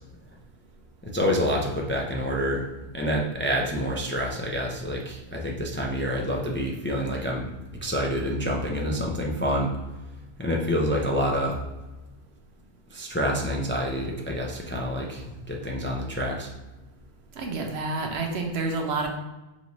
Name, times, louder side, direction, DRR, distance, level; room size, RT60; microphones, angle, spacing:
voice 1, 1.0-2.7 2.9-7.5 7.8-9.7 10.4-11.6 12.9-16.5, equal, 15° left, -1 dB, 0.4 m, -27 dB
voice 2, 17.4-19.1, right 3 dB, 75° right, 3 dB, 1.0 m, -29 dB
5.6 x 2.7 x 3.1 m, 1.1 s
omnidirectional pair, 1.1 m